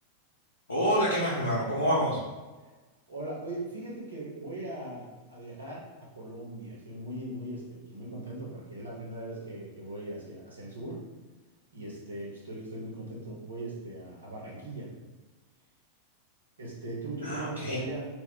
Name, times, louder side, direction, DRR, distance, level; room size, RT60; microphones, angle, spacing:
voice 1, 0.7-2.2 17.2-17.8, equal, 75° left, -8 dB, 0.7 m, -27 dB
voice 2, 3.1-5.8 6.1-11.0 11.7-14.9 16.6-18.1, right 1 dB, 75° right, -4 dB, 0.9 m, -39 dB
2.3 x 2.0 x 3.7 m, 1.2 s
figure-of-eight pair, 90°, 0 cm